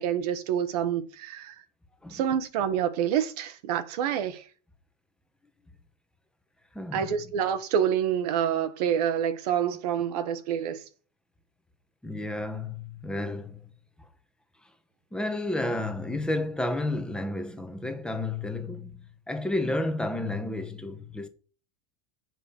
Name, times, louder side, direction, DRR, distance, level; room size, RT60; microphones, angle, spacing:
voice 1, 0.0-1.6 2.1-4.4 6.9-10.8, right 9 dB, 75° right, 1.1 m, -27 dB
voice 2, 6.7-7.2 12.0-13.6 15.1-21.3, left 2 dB, 5° left, 1.1 m, -31 dB
7.7 x 5.1 x 6.9 m
supercardioid pair, 130°, 20 cm